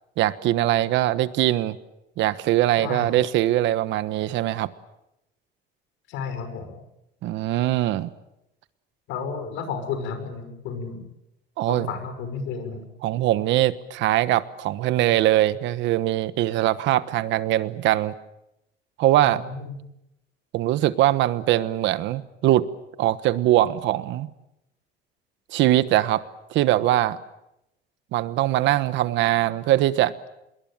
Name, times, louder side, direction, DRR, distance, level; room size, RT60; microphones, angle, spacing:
voice 1, 0.2-1.8 2.2-4.7 7.2-8.1 11.6-11.9 13.0-18.1 19.0-19.4 20.5-22.7 23.0-24.3 25.5-26.2 26.5-27.2 28.1-30.1, right 14 dB, 75° right, 15 dB, 1.2 m, -22 dB
voice 2, 2.8-3.2 6.1-6.8 9.1-11.1 11.7-12.8 19.3-19.8, left 5 dB, 85° left, 9 dB, 6.0 m, -32 dB
26.0 x 22.0 x 8.9 m, 0.89 s
cardioid pair, 160°, 19 cm